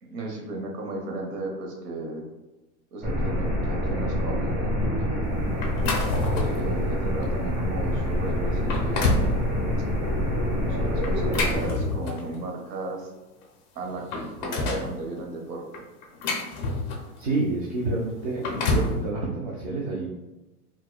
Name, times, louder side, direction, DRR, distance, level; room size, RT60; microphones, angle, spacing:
voice 1, 0.0-2.3 2.9-5.4 6.4-9.4 10.5-13.1 13.7-15.8, right 2 dB, 80° right, 0 dB, 1.1 m, -35 dB
sound 1, 3.0-11.7, equal, 20° right, 1.0 m, -26 dB
sound 2, 5.6-6.7 7.2-7.4 8.0-8.1 8.5-9.3 11.0-12.4 13.4-13.5 13.8-14.9 15.7-17.2 18.2-19.0, left 2 dB, 35° left, 0.4 m, -27 dB
voice 2, 17.2-20.1, right 2 dB, 35° right, -3 dB, 0.4 m, -28 dB
4.5 x 2.2 x 2.2 m, 1.1 s
hypercardioid pair, 140°, 47 cm